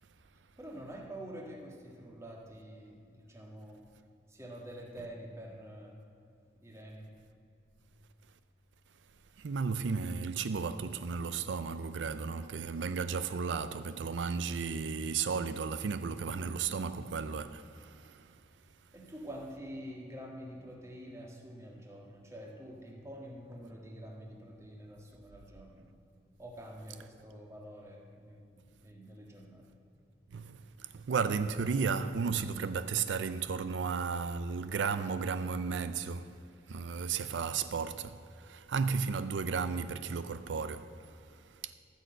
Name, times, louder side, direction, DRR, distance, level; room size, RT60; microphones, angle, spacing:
voice 1, 0.6-3.9 4.3-6.0 6.5-7.1 18.9-25.9 26.4-29.8, equal, 15° right, 1.7 m, -47 dB
voice 2, 9.4-18.4 30.3-36.4 36.7-41.7, right 5 dB, 85° right, 0.5 m, -34 dB
14.0 x 6.6 x 7.8 m
head